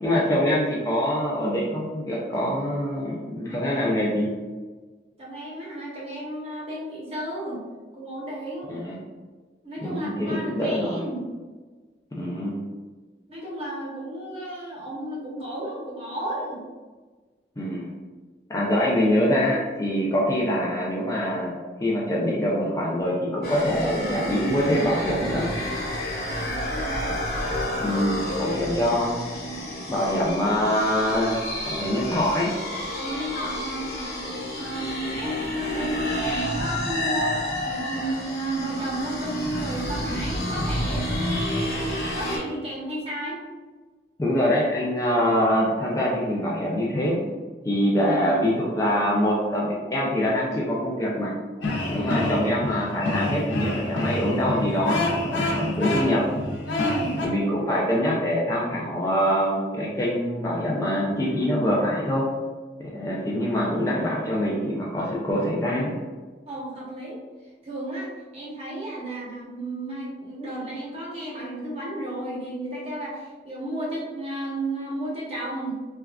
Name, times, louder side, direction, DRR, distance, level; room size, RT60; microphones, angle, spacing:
voice 1, 0.0-4.3 8.7-9.0 9.8-11.0 12.2-12.6 17.6-18.0 18.5-21.5 21.8-25.5 27.8-29.2 29.9-31.4 31.7-32.5 44.2-47.2 47.6-51.3 51.9-56.2 57.2-62.2 62.8-65.9, equal, 15° left, -5 dB, 0.3 m, -24 dB
voice 2, 5.2-7.6 7.9-8.8 9.6-11.2 13.3-16.6 26.2-27.0 28.2-28.9 32.9-34.1 34.5-43.4 48.0-48.5 51.9-52.3 56.7-57.2 66.5-67.2 67.6-75.8, right 1 dB, 35° right, -6 dB, 0.8 m, -33 dB
sound 1, 23.4-42.4, equal, 55° left, 0.7 m, -30 dB
sound 2, 51.6-57.3, left 2 dB, 90° left, 0.5 m, -28 dB
3.3 x 2.4 x 2.2 m, 1.4 s
head